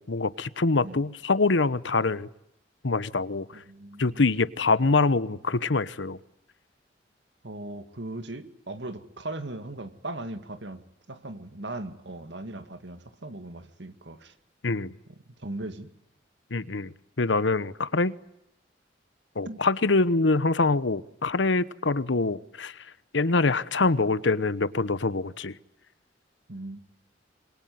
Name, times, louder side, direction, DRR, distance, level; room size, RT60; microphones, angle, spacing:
voice 1, 0.0-2.3 2.8-3.6 4.0-6.2 14.6-14.9 16.5-18.1 19.4-22.8 23.1-25.5, left 3 dB, 75° left, 1.0 m, -25 dB
voice 2, 3.5-4.3 7.4-10.8 11.1-14.3 15.4-15.9 19.5-19.6 26.5-26.8, right 2 dB, 65° right, 2.1 m, -38 dB
27.0 x 22.5 x 9.4 m
head